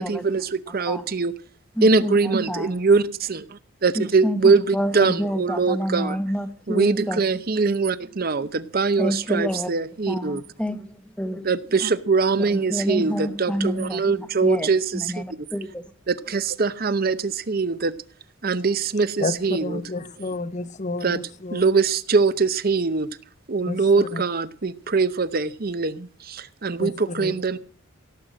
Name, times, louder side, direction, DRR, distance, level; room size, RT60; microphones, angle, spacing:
voice 1, 0.0-1.3 1.8-6.2 6.7-10.4 11.4-15.1 16.1-17.9 18.4-19.8 21.0-21.2 21.5-23.1 23.5-27.6, right 4 dB, 45° right, 0.8 m, -22 dB
voice 2, 0.7-1.0 1.8-2.7 3.9-7.2 9.0-9.7 10.1-11.5 12.5-15.8, equal, 5° left, 1.1 m, -28 dB
voice 3, 19.6-21.6 23.7-24.2 26.8-26.9 27.2-27.3, left 2 dB, 35° left, 0.7 m, -30 dB
17.0 x 7.9 x 7.7 m
head